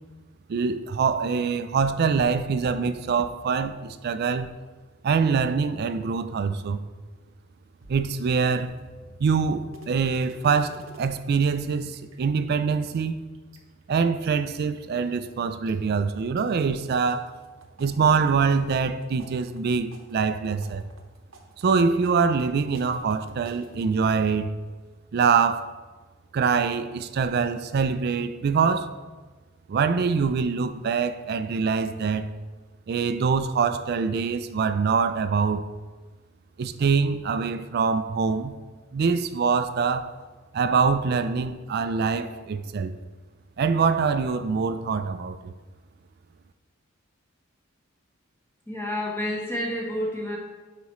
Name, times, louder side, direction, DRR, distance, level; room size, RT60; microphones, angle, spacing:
voice 1, 0.5-4.5 5.0-6.8 7.9-8.7 9.2-13.2 13.9-17.4 17.8-20.8 21.6-24.5 25.1-25.7 26.3-28.9 29.7-32.3 32.9-35.7 36.6-38.6 38.9-40.1 40.5-43.0 43.6-45.5, right 5 dB, 50° right, 12 dB, 0.3 m, -24 dB
sound 1, 7.8-11.1 11.4-11.5 11.8-12.5 12.8-14.3 14.8-15.3 15.7-16.4 16.7-23.9, right 1 dB, 75° right, 0.8 m, -49 dB
voice 2, 48.7-50.4, left 1 dB, 10° left, -3 dB, 0.9 m, -29 dB
9.4 x 4.1 x 3.1 m, 1.3 s
head